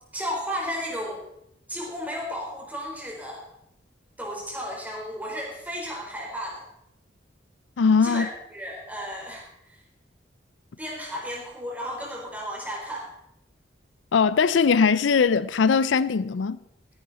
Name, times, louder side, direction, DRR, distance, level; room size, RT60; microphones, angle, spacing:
voice 1, 0.1-1.2 1.7-3.4 4.2-6.6 8.0-8.3 8.5-9.8 10.8-13.1, equal, 10° right, 4.1 m, -33 dB
voice 2, 7.8-8.3 14.1-16.6, left 5 dB, 80° left, 0.5 m, -20 dB
15.0 x 10.5 x 4.2 m
head